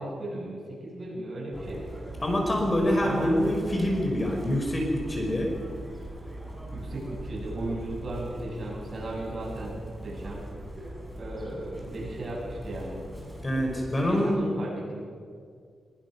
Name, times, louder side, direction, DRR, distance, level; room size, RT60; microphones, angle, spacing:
voice 1, 0.0-1.8 3.0-3.3 6.7-10.4 11.2-13.0 14.1-15.1, right 1 dB, 45° right, -3 dB, 7.9 m, -36 dB
Chirp tweet, 1.5-14.1, right 1 dB, 10° right, 6.1 m, -40 dB
voice 2, 2.2-5.5 13.4-14.4, left 1 dB, 25° left, 1 dB, 5.2 m, -25 dB
24.0 x 22.5 x 6.1 m, 2.2 s
wide cardioid pair, 110°, 0 cm